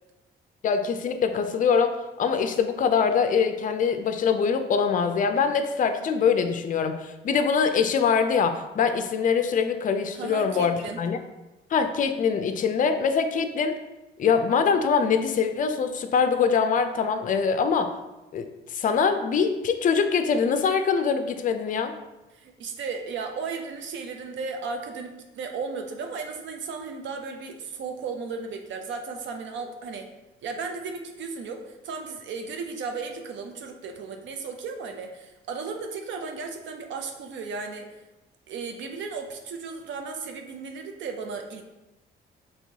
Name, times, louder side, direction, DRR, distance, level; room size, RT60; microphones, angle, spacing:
voice 1, 0.6-11.2 11.7-13.8 14.2-17.9 18.3-21.9, left 6 dB, 40° left, 8 dB, 0.4 m, -23 dB
voice 2, 10.1-11.0 22.3-30.1 30.4-37.9 38.5-41.6, right 4 dB, 70° right, 4 dB, 0.5 m, -35 dB
4.4 x 3.0 x 2.7 m, 1.0 s
cardioid pair, 90°, 20 cm